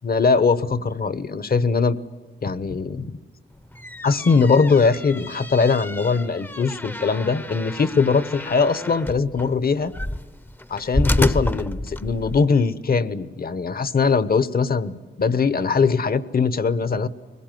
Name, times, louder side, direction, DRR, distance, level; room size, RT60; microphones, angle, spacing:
voice 1, 0.0-2.0 2.4-3.1 4.0-9.9 10.7-17.1, left 4 dB, 55° left, 16 dB, 1.1 m, -21 dB
sound 1, 3.6-12.5, left 1 dB, 10° left, 0.7 m, -29 dB
22.0 x 20.0 x 9.3 m, 1.4 s
wide cardioid pair, 110°, 18 cm